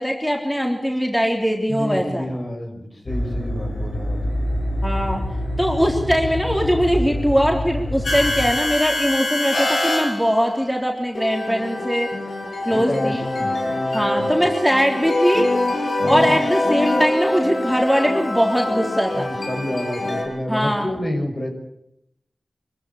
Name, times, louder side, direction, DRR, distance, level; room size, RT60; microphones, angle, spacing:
voice 1, 0.0-2.2 4.8-5.2 5.6-12.1 12.6-13.2 13.9-15.5 16.0-19.3 20.5-20.9, equal, 5° left, 0 dB, 3.6 m, -21 dB
voice 2, 1.7-4.2 12.7-13.5 14.1-14.5 16.0-16.3 19.1-21.5, left 1 dB, 40° left, 3 dB, 5.7 m, -29 dB
sound 1, 3.1-10.5 11.1-20.2, left 1 dB, 85° left, 6.5 m, -24 dB
24.0 x 14.5 x 8.7 m, 0.79 s
wide cardioid pair, 50°, 0 cm